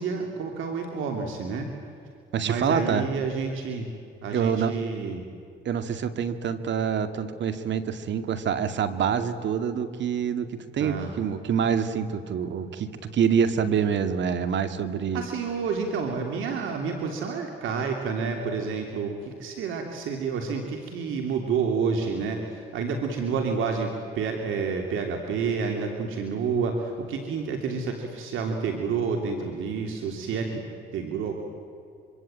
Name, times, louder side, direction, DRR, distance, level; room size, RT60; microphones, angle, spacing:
voice 1, 0.0-1.7 2.4-3.9 4.2-5.2 10.8-11.1 15.1-30.6 30.9-31.3, right 5 dB, 85° right, 3 dB, 3.1 m, -29 dB
voice 2, 2.3-3.1 4.3-4.7 5.6-15.2, right 7 dB, 65° right, 9 dB, 2.2 m, -26 dB
26.0 x 25.0 x 9.0 m, 2.4 s
cardioid pair, 90°, 20 cm